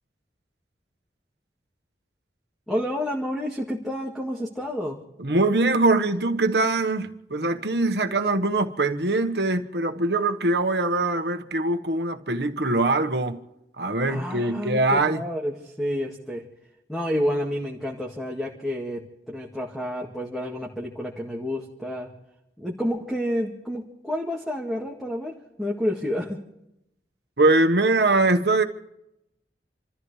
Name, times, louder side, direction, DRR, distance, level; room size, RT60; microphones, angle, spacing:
voice 1, 2.7-5.0 14.1-16.4 16.9-22.1 22.6-26.4, equal, ahead, 1.9 m, -29 dB
voice 2, 5.2-13.4 13.8-15.2 27.4-28.6, right 2 dB, 70° right, 1.4 m, -22 dB
28.5 x 14.0 x 3.3 m
head